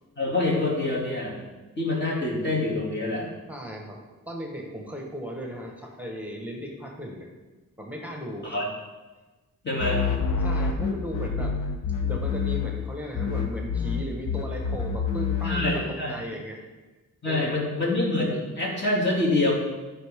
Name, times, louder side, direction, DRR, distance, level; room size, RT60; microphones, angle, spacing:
voice 1, 0.2-1.5 1.8-3.4 8.4-8.7 9.6-10.0 15.4-16.1 17.2-19.5, left 2 dB, 35° left, -4 dB, 2.7 m, -26 dB
voice 2, 3.5-7.3 7.8-8.6 10.4-11.6 12.0-16.6 17.2-17.6, equal, 5° right, 0 dB, 1.4 m, -36 dB
sound 1, 9.8-12.9 13.1-15.7, left 5 dB, 65° left, 0.9 m, -27 dB
11.5 x 4.6 x 3.7 m, 1.2 s
cardioid pair, 75°, 33 cm